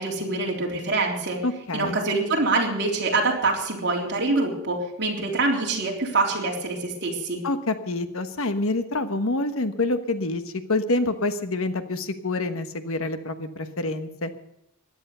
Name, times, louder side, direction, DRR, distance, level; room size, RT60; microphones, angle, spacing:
voice 1, 0.0-1.4 1.7-7.4, right 3 dB, 50° right, -1 dB, 3.7 m, -25 dB
voice 2, 1.4-2.0 7.4-14.3, left 2 dB, 60° left, 10 dB, 1.2 m, -27 dB
16.0 x 11.0 x 6.8 m, 0.79 s
head